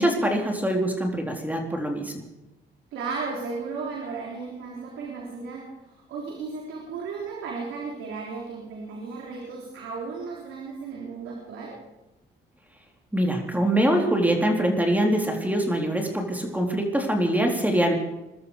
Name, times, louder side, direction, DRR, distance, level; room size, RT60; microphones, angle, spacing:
voice 1, 0.0-2.2 13.1-17.9, right 1 dB, 10° right, 2 dB, 3.9 m, -24 dB
voice 2, 2.9-11.8, right 4 dB, 90° right, -1 dB, 3.6 m, -35 dB
22.0 x 12.5 x 5.1 m, 0.98 s
cardioid pair, 90°, 20 cm